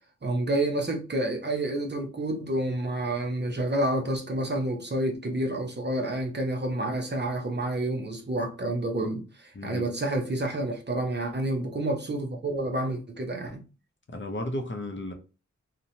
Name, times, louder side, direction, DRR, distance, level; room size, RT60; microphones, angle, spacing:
voice 1, 0.2-13.6, right 1 dB, 35° right, 0.6 m, -29 dB
voice 2, 9.5-9.9 14.1-15.1, left 1 dB, 40° left, 0.6 m, -34 dB
2.8 x 2.1 x 2.7 m
wide cardioid pair, 70°, 30 cm